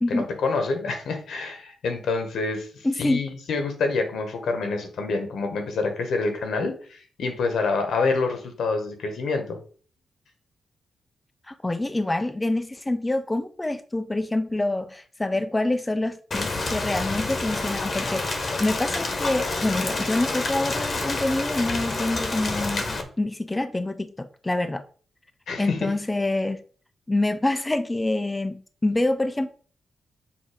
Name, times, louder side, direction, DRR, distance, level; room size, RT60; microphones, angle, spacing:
voice 1, 0.1-9.6 25.5-25.9, left 3 dB, 85° left, 1.3 m, -27 dB
voice 2, 2.8-3.2 11.5-24.8 25.6-26.6 27.1-29.5, left 2 dB, 15° left, 0.4 m, -26 dB
Rain, 16.3-23.0, left 3 dB, 40° left, 0.9 m, -28 dB
7.2 x 2.7 x 5.0 m
wide cardioid pair, 130°, 0 cm